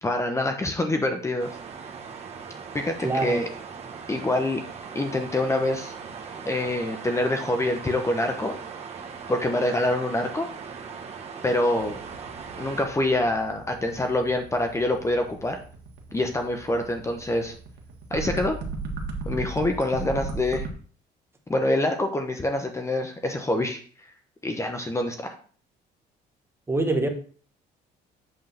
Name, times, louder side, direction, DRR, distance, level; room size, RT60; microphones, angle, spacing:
voice 1, 0.0-1.5 2.7-3.5 4.1-4.6 4.9-5.9 6.4-8.5 9.3-10.5 11.4-12.0 12.6-15.6 16.1-17.5 18.1-18.6 19.2-20.7 21.5-24.1 24.4-25.4, left 1 dB, 15° left, 5 dB, 0.9 m, -26 dB
sound 1, 1.4-12.8, right 6 dB, 40° right, 1.3 m, -39 dB
voice 2, 3.0-3.4 26.7-27.1, right 2 dB, 15° right, 5 dB, 1.2 m, -24 dB
sound 2, 11.7-20.7, right 4 dB, 85° right, 1.6 m, -36 dB
8.0 x 3.6 x 5.7 m, 0.43 s
cardioid pair, 110°, 17 cm